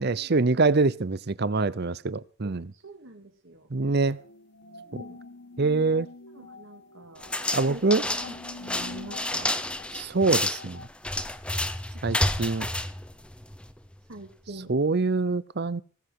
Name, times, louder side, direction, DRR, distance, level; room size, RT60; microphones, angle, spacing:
voice 1, 0.0-2.7 3.7-4.2 4.9-5.0 5.6-6.1 7.5-8.1 9.9-10.8 12.0-12.7 14.7-15.8, right 3 dB, 45° right, 19 dB, 0.7 m, -25 dB
voice 2, 2.4-3.7 4.9-5.2 5.7-6.0 6.3-7.2 7.7-7.8 8.5-9.6 11.9-12.0 14.1-14.7, right 2 dB, 65° right, 2 dB, 2.6 m, -45 dB
sound 1, 4.0-10.9, left 3 dB, 55° left, 1.2 m, -46 dB
sound 2, 7.2-13.8, left 1 dB, 5° left, 0.8 m, -30 dB
20.0 x 7.9 x 6.4 m, 0.40 s
head